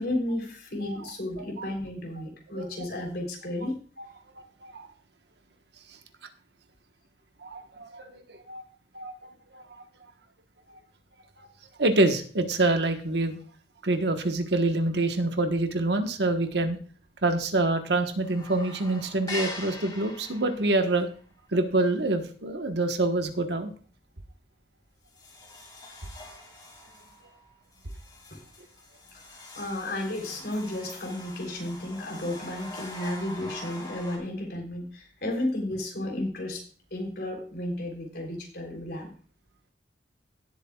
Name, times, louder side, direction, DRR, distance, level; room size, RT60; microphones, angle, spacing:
voice 1, 0.0-3.8 28.3-28.4 29.6-36.6 36.9-39.1, left 1 dB, 60° left, 1 dB, 3.5 m, -33 dB
voice 2, 1.4-1.7 2.6-2.9 4.0-4.1 4.6-4.9 7.4-8.6 8.9-9.1 9.5-9.6 11.8-13.4 13.8-16.8 17.2-21.1 21.5-23.7, right 2 dB, 65° right, 6 dB, 1.2 m, -26 dB
sound 1, 16.2-16.5 16.7-16.8 17.2-17.8 18.1-23.3 23.7-24.0 24.5-24.6 25.0-34.2, left 2 dB, 25° left, 2.3 m, -43 dB
16.5 x 8.3 x 2.4 m, 0.41 s
head